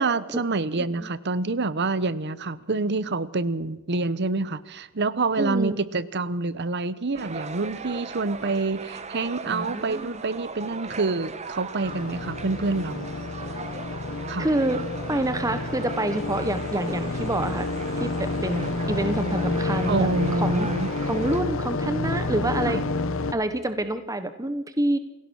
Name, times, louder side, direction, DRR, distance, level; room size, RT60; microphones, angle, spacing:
voice 1, 0.0-13.1 14.3-14.5 19.9-20.9 22.7-22.9, right 3 dB, 55° right, 17 dB, 0.9 m, -27 dB
voice 2, 5.4-5.8 9.5-10.2 14.4-14.8 15.1-17.7 18.0-20.1 20.4-20.7 21.0-22.8 23.3-25.0, right 1 dB, 15° right, 10 dB, 1.2 m, -27 dB
sound 1, 7.1-21.4, right 4 dB, 30° right, 1.3 m, -39 dB
sound 2, 11.8-23.3, left 2 dB, 70° left, 1.3 m, -29 dB
28.0 x 17.0 x 6.4 m, 1.0 s
head